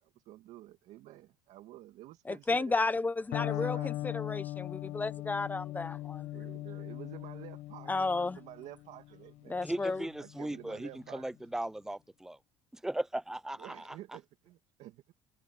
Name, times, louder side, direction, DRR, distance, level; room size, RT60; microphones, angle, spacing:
voice 1, 0.0-2.8 3.4-4.0 6.3-9.6 10.2-11.3 13.6-15.1, right 15 dB, 70° right, 2.3 m, -50 dB
voice 2, 2.2-6.3 7.9-8.4 9.5-10.1, left 3 dB, 15° left, 1.0 m, -33 dB
Electric guitar, 3.3-11.2, left 16 dB, 70° left, 1.1 m, -40 dB
voice 3, 9.6-12.4 12.8-13.7, right 1 dB, 5° right, 0.6 m, -37 dB
cardioid pair, 125°, 12 cm